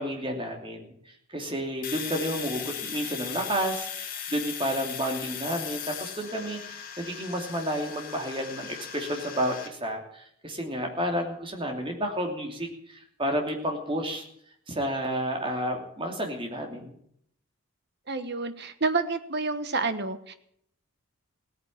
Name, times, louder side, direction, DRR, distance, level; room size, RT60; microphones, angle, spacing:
voice 1, 0.0-14.2 14.7-16.9, equal, 25° right, 3 dB, 3.0 m, -31 dB
Domestic sounds home sounds, 1.8-9.7, left 8 dB, 40° left, 3.2 m, -38 dB
voice 2, 18.1-20.3, right 3 dB, 45° right, 10 dB, 1.3 m, -29 dB
17.0 x 9.4 x 8.7 m, 0.68 s
head